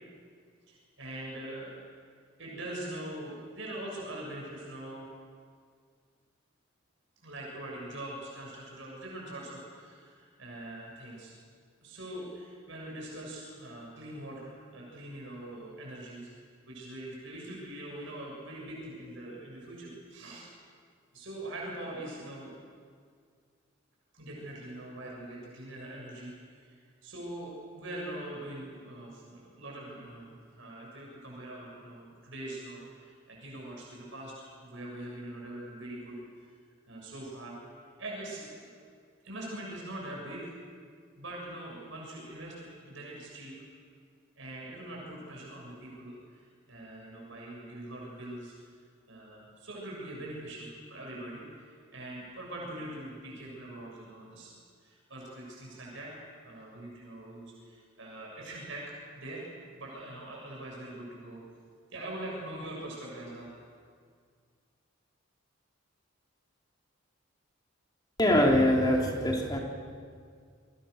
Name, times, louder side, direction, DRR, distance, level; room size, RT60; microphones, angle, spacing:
voice 1, 0.7-1.7 2.4-5.1 7.2-11.3 11.8-20.5 21.1-22.5 24.1-26.3 26.6-26.8 27.0-36.2 36.9-37.6 38.0-38.8 39.2-40.6 41.2-43.5 44.4-48.8 49.1-56.2 56.4-58.8 59.2-59.5 59.8-61.4 61.9-63.5, right 1 dB, 65° right, -3 dB, 7.2 m, -43 dB
voice 2, 68.2-69.6, left 1 dB, 20° left, 0 dB, 3.6 m, -23 dB
28.5 x 23.5 x 6.7 m, 2.1 s
head